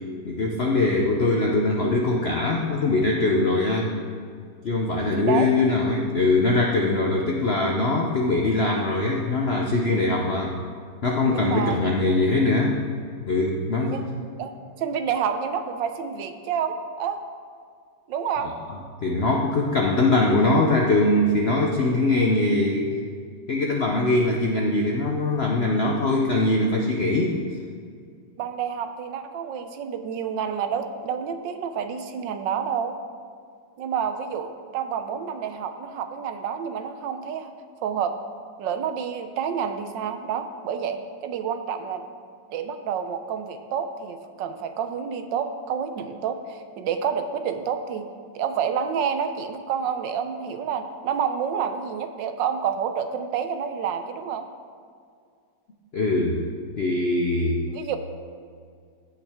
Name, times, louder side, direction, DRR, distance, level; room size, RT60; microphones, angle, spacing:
voice 1, 0.2-3.9 4.6-10.5 11.0-12.8 13.2-14.1 18.4-18.5 19.0-22.9 23.5-27.3 55.9-56.4 56.8-57.6, left 2 dB, 65° left, 0 dB, 0.6 m, -22 dB
voice 2, 5.2-5.5 11.2-11.8 13.8-14.0 14.4-14.5 14.8-17.2 18.1-18.5 28.4-32.9 33.8-37.5 37.8-38.2 38.6-42.0 42.5-48.1 48.3-54.4 57.7-58.0, right 7 dB, 80° right, 8 dB, 1.3 m, -29 dB
15.0 x 5.7 x 3.5 m, 2.1 s
omnidirectional pair, 2.0 m